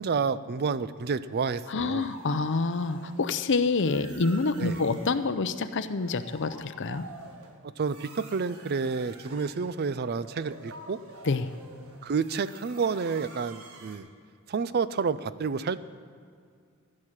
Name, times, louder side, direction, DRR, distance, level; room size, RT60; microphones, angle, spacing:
voice 1, 0.0-2.1 4.6-4.8 7.8-11.0 12.0-14.1 14.5-15.8, right 5 dB, 50° right, 15 dB, 0.5 m, -29 dB
voice 2, 1.7-7.1 11.3-11.5, left 3 dB, 60° left, 10 dB, 0.6 m, -27 dB
sound 1, 2.0-3.4 3.8-5.3 5.7-14.0, right 2 dB, 85° right, 1.6 m, -48 dB
15.0 x 6.4 x 8.8 m, 2.2 s
head